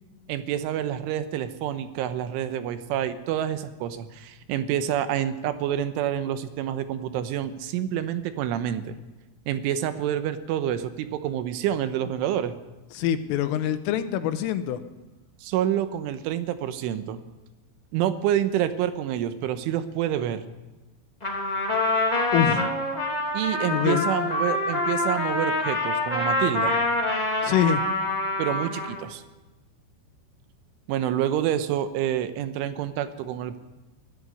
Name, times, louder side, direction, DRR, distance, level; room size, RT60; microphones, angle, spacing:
voice 1, 0.3-8.9 9.5-12.6 15.4-17.2 17.9-20.4 23.3-26.7 28.4-29.2 30.9-33.6, right 10 dB, 80° right, 11 dB, 3.4 m, -28 dB
voice 2, 13.0-14.8 22.3-22.7 23.7-24.0 27.4-27.8, left 10 dB, 85° left, 11 dB, 3.7 m, -24 dB
Trumpet, 21.2-29.1, left 2 dB, 10° left, 2.3 m, -26 dB
21.0 x 13.0 x 9.7 m, 1.1 s
omnidirectional pair, 5.7 m